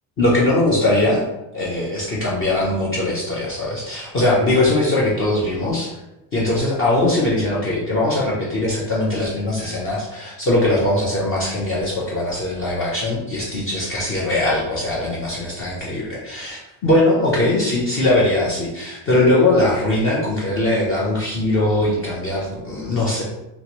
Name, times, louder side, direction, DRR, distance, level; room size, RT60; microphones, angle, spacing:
voice 1, 0.2-1.2 1.5-5.9 6.3-23.2, left 1 dB, 30° left, -5 dB, 0.4 m, -20 dB
2.9 x 2.5 x 2.8 m, 0.96 s
cardioid pair, 145°, 50 cm